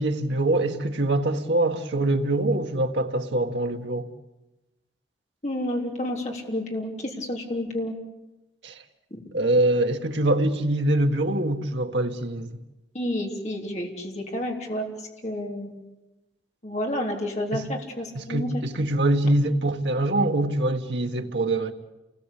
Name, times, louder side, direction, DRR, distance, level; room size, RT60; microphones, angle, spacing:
voice 1, 0.0-4.1 8.6-8.7 9.3-12.5 17.5-17.6 18.2-21.7, right 1 dB, 85° right, 1.8 m, -24 dB
voice 2, 5.4-7.9 9.1-9.2 12.9-15.8 16.6-18.5, left 1 dB, 40° left, 3.5 m, -30 dB
28.5 x 20.0 x 8.5 m
head